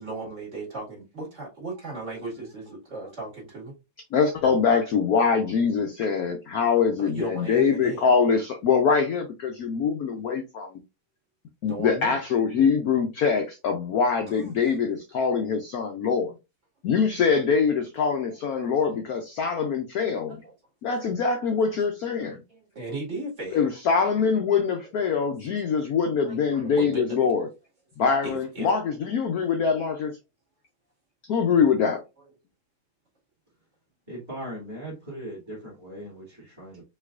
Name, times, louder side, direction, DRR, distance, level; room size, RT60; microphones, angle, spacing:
voice 1, 0.0-3.7 7.0-8.0 11.6-12.2 14.3-14.7 18.6-18.7 19.1-19.2 20.4-20.5 22.2-23.7 25.1-25.2 25.8-27.1 28.2-28.7, right 2 dB, 35° right, 2.1 m, -37 dB
voice 2, 4.1-10.7 11.6-16.3 16.8-20.4 20.8-22.4 23.5-27.5 28.0-30.2 31.3-32.0, left 6 dB, 85° left, 0.8 m, -24 dB
voice 3, 34.1-36.8, right 1 dB, 10° right, 2.0 m, -39 dB
5.4 x 3.1 x 2.4 m
omnidirectional pair, 2.3 m